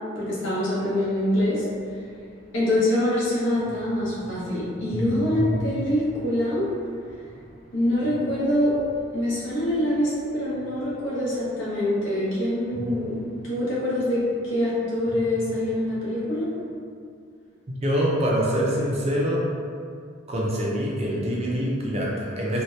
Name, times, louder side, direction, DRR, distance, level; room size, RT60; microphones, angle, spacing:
voice 1, 0.1-1.7 2.5-6.7 7.7-8.8 9.1-13.2 13.4-16.5, left 1 dB, 60° left, -8 dB, 0.8 m, -25 dB
sound 1, 1.1-11.4 12.7-14.6 15.0-16.6, right 1 dB, 80° left, 1.2 m, -38 dB
voice 2, 17.8-19.4 20.3-22.6, equal, 30° right, -4 dB, 0.4 m, -25 dB
2.7 x 2.2 x 3.1 m, 2.3 s
head